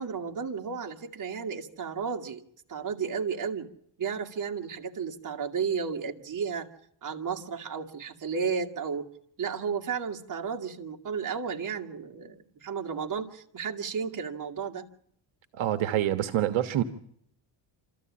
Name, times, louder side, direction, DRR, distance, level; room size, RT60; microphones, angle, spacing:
voice 1, 0.0-2.4 2.7-3.7 4.0-6.7 7.0-9.1 9.4-14.9, right 6 dB, 40° right, 2 dB, 2.0 m, -33 dB
voice 2, 15.5-16.8, right 12 dB, 65° right, 9 dB, 1.3 m, -26 dB
26.5 x 14.0 x 8.6 m, 0.69 s
cardioid pair, 130°, 50 cm